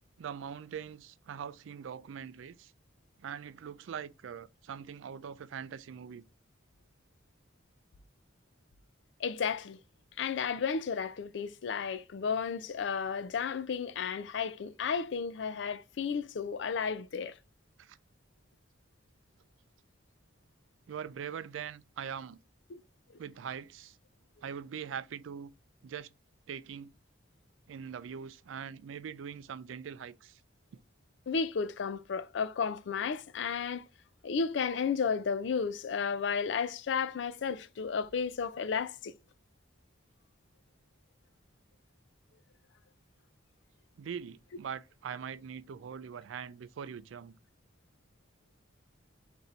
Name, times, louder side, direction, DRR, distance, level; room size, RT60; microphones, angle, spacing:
voice 1, 0.2-2.7 3.2-6.2 17.8-18.0 20.9-22.4 23.2-24.0 24.4-25.5 25.8-26.1 26.5-26.9 27.7-30.4 44.0-47.3, right 7 dB, 85° right, 0.4 m, -42 dB
voice 2, 9.2-9.8 10.2-17.3 22.7-22.8 31.3-33.8 34.2-39.1, left 6 dB, 65° left, 0.4 m, -33 dB
4.0 x 2.6 x 4.4 m
head